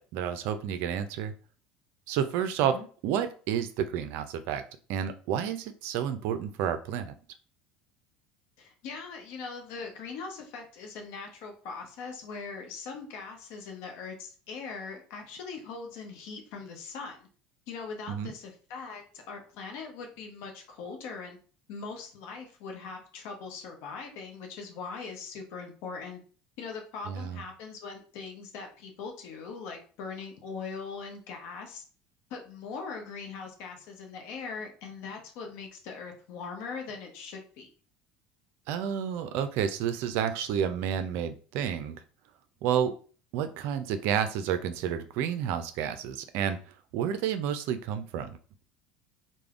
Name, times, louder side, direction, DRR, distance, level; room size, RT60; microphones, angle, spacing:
voice 1, 0.0-1.3 2.1-2.7 3.0-4.6 4.9-7.1 18.1-18.3 27.1-27.4 38.7-42.0 42.6-42.9 43.3-46.6 46.9-48.4, right 8 dB, 65° right, 10 dB, 0.3 m, -30 dB
voice 2, 8.6-17.3 17.7-21.4 21.7-26.2 26.6-31.8 32.3-37.7, left 5 dB, 70° left, 3 dB, 0.7 m, -41 dB
3.3 x 2.1 x 2.4 m, 0.40 s
hypercardioid pair, 85°, 4 cm